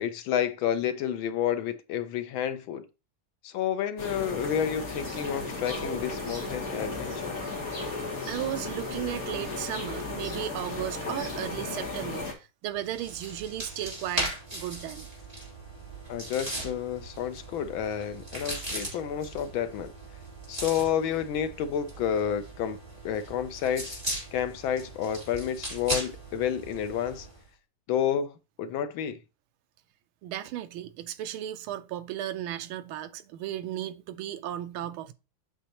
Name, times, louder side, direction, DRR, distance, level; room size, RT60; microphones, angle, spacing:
voice 1, 0.0-2.9 3.4-7.4 16.1-19.9 20.5-22.8 23.0-24.0 24.3-27.3 27.9-29.2, left 9 dB, 75° left, 1.4 m, -30 dB
sound 1, 4.0-12.3, left 3 dB, 40° left, 3.0 m, -35 dB
voice 2, 8.3-15.1 30.2-35.1, right 12 dB, 80° right, 1.5 m, -35 dB
sound 2, 12.7-27.4, right 1 dB, 15° right, 3.7 m, -38 dB
8.3 x 6.2 x 2.9 m
omnidirectional pair, 2.4 m